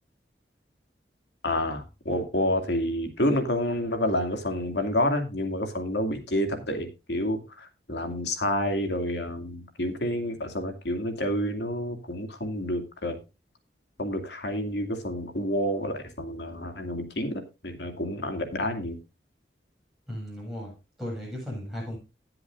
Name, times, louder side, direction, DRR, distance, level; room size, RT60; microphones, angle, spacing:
voice 1, 1.4-13.2 14.0-19.0, left 1 dB, 80° left, 6 dB, 2.5 m, -29 dB
voice 2, 20.1-22.0, equal, ahead, -5 dB, 7.8 m, -36 dB
19.5 x 7.7 x 2.6 m, 0.27 s
head